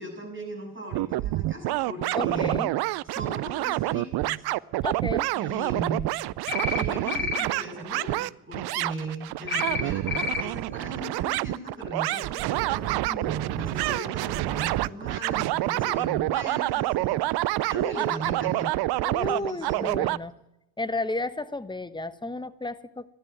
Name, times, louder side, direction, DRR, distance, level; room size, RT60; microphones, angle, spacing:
voice 1, 0.0-2.6 3.0-4.5 5.3-6.1 6.7-18.7 19.2-19.9, right 1 dB, 25° right, 1 dB, 7.7 m, -38 dB
sound 1, 0.9-20.2, right 18 dB, 60° right, 0.5 m, -27 dB
voice 2, 2.1-2.7 4.8-5.3 19.0-20.3 20.8-23.1, left 2 dB, 10° left, 14 dB, 1.0 m, -32 dB
sound 2, 6.5-6.8 7.1-7.4 9.5-9.8 10.1-10.4, left 4 dB, 50° left, 2.2 m, -29 dB
12.5 x 11.5 x 9.0 m, 0.89 s
hypercardioid pair, 50°, 44 cm